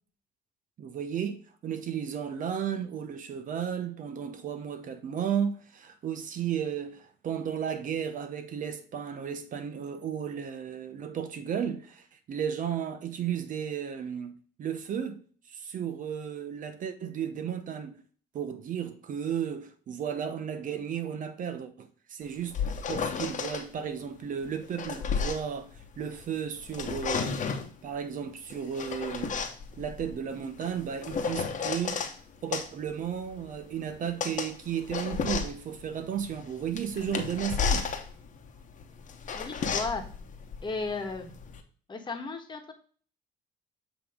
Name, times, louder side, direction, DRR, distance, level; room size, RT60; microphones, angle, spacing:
voice 1, 0.8-15.2 15.5-18.0 18.3-27.5 27.8-29.4 29.8-32.0 32.4-37.9, right 8 dB, 50° right, 0.9 m, -34 dB
sound 1, 22.3-23.6 24.5-26.3 26.6-27.7 28.5-32.1 32.5-41.6, left 6 dB, 50° left, 1.1 m, -33 dB
voice 2, 39.3-40.0 40.6-41.3 41.9-42.7, left 3 dB, 25° left, 1.4 m, -34 dB
7.6 x 3.1 x 5.0 m
cardioid pair, 110°, 17 cm